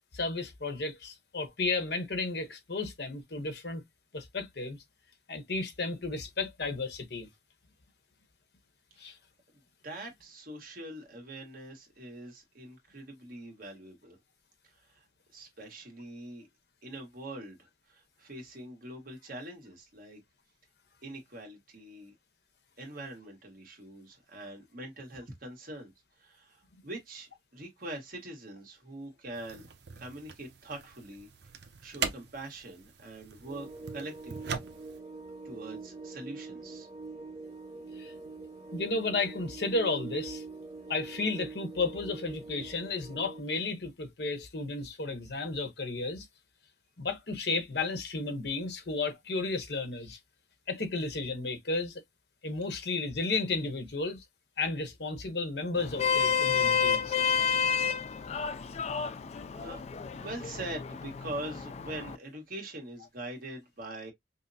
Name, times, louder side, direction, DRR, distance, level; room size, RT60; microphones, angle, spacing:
voice 1, 0.1-3.8 4.1-4.8 5.3-7.3 9.0-9.2 37.9-38.1 38.7-40.4 40.9-46.3 47.0-50.2 50.7-52.0 52.4-54.2 54.6-57.2, left 3 dB, 65° left, 0.9 m, -33 dB
voice 2, 9.8-14.2 14.6-15.0 15.3-16.4 16.8-20.2 21.0-22.1 22.8-25.9 26.2-29.7 30.0-31.3 31.8-33.7 33.9-34.6 35.4-36.9 58.7-59.2 59.5-64.1, right 1 dB, 50° right, 1.4 m, -43 dB
sound 1, 29.3-35.0, right 6 dB, 70° right, 0.7 m, -41 dB
sound 2, 33.4-43.4, right 3 dB, 25° right, 0.5 m, -44 dB
Vehicle horn car horn honking, 55.8-62.2, left 7 dB, 35° left, 0.3 m, -30 dB
5.4 x 2.0 x 2.7 m
head